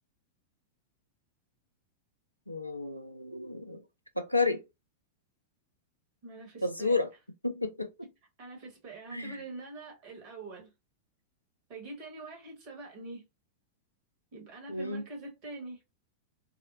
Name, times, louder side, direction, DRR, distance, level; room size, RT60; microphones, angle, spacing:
voice 1, 2.5-3.8 4.2-4.6 6.6-7.1 7.4-8.1 9.1-9.4 14.7-15.0, left 3 dB, 85° left, 0.4 m, -31 dB
voice 2, 6.2-7.0 8.4-10.7 11.7-13.3 14.3-15.8, right 2 dB, 40° right, 1.3 m, -44 dB
2.8 x 2.1 x 2.5 m
figure-of-eight pair, 90°, 0 cm